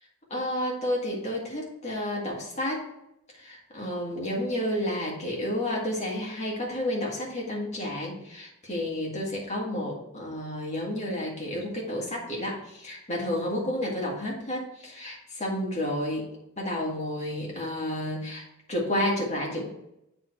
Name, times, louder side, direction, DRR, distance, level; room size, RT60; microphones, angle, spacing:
voice 1, 0.3-2.9 3.3-16.2 16.6-19.7, left 1 dB, 30° left, -2 dB, 1.7 m, -31 dB
8.4 x 3.4 x 4.5 m, 0.84 s
head